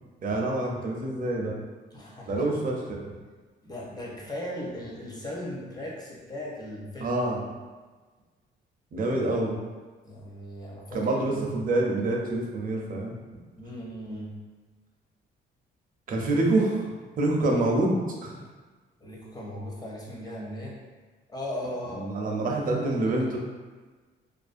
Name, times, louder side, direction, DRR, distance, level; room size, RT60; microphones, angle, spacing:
voice 1, 0.2-1.6 2.2-3.1 7.0-7.4 8.9-9.6 10.9-13.1 16.1-18.4 21.9-23.4, right 2 dB, 45° right, 0 dB, 0.5 m, -27 dB
voice 2, 1.9-2.5 3.6-7.2 10.0-11.5 13.6-14.3 19.0-20.8 21.3-22.1 22.4-23.4, left 1 dB, 20° left, -4 dB, 0.7 m, -38 dB
2.4 x 2.1 x 2.5 m, 1.3 s
cardioid pair, 90°, 20 cm